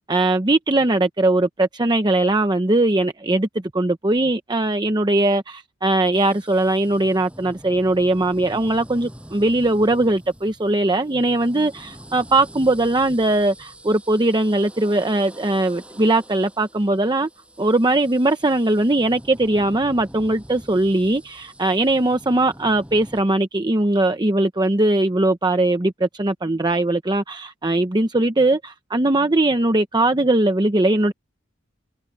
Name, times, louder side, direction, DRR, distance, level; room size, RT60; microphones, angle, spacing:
voice 1, 0.0-3.5 3.7-17.3 17.6-31.1, right 2 dB, 20° right, 0.8 m, -20 dB
sound 1, 6.1-23.2, equal, 5° right, 6.4 m, -44 dB
head